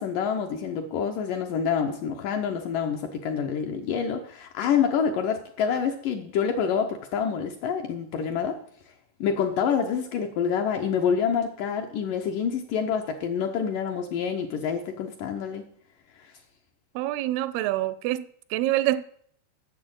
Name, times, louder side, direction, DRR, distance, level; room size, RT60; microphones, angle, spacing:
voice 1, 0.0-8.6 9.2-15.6 16.2-16.3, left 7 dB, 75° left, 2.0 m, -27 dB
voice 2, 17.0-19.0, right 15 dB, 85° right, 2.5 m, -26 dB
8.6 x 7.2 x 7.8 m
omnidirectional pair, 4.6 m